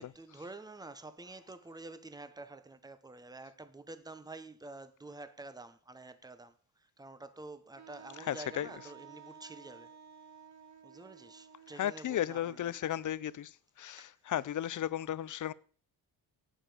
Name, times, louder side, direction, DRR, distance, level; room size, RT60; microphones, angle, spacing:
voice 1, 0.0-10.0 10.8-12.8 14.0-14.4, right 2 dB, 10° right, 1.2 m, -49 dB
Wind instrument woodwind instrument, 7.8-13.5, right 7 dB, 45° right, 1.1 m, -55 dB
voice 2, 8.3-8.7 11.8-13.5 13.8-15.5, left 11 dB, 50° left, 0.7 m, -34 dB
17.5 x 7.0 x 5.2 m
cardioid pair, 95°, 39 cm